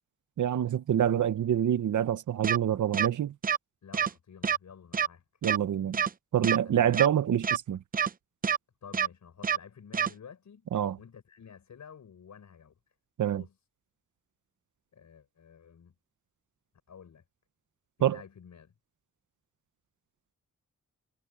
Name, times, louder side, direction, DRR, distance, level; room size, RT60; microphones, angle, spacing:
voice 1, 0.4-3.3 5.4-6.0 6.3-7.8 10.7-11.0 13.2-13.4 18.0-18.2, right 10 dB, 85° right, 0.8 m, -26 dB
sound 1, 2.4-2.6 2.9-3.1 3.4-3.6 3.9-4.1 4.4-4.6 4.9-5.1 5.4-5.6 5.9-6.1 6.4-6.6 6.9-7.1 7.4-7.6 7.9-8.1 8.4-8.6 8.9-9.1 9.4-9.6 9.9-10.1, right 7 dB, 30° right, 0.4 m, -26 dB
voice 2, 3.8-5.2 6.6-7.0 8.8-10.7 11.0-12.8 13.3-13.5 14.9-15.9 16.9-17.2 18.0-18.7, left 7 dB, 75° left, 6.0 m, -51 dB
wide cardioid pair, 165°, 29 cm